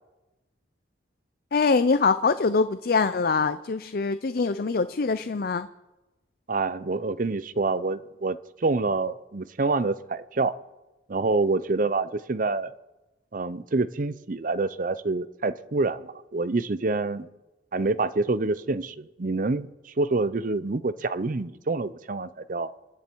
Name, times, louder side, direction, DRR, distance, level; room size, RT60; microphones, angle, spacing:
voice 1, 1.5-5.7, left 4 dB, 55° left, 13 dB, 0.5 m, -24 dB
voice 2, 6.5-10.5 11.1-12.7 13.3-17.3 17.7-22.7, right 3 dB, 50° right, 15 dB, 0.7 m, -27 dB
27.5 x 10.5 x 4.6 m, 1.0 s
head